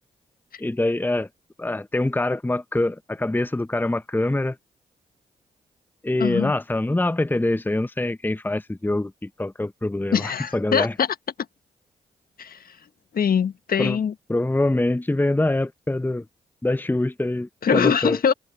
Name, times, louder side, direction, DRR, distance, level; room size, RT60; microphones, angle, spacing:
voice 1, 0.6-1.3 1.6-4.6 6.0-10.9 13.8-14.0 14.3-16.2 16.6-18.2, left 2 dB, 10° left, 0.9 m, -24 dB
voice 2, 6.2-6.5 10.1-11.1 12.4-12.6 13.1-14.1 17.6-18.3, left 7 dB, 60° left, 1.6 m, -22 dB
supercardioid pair, 45°, 17 cm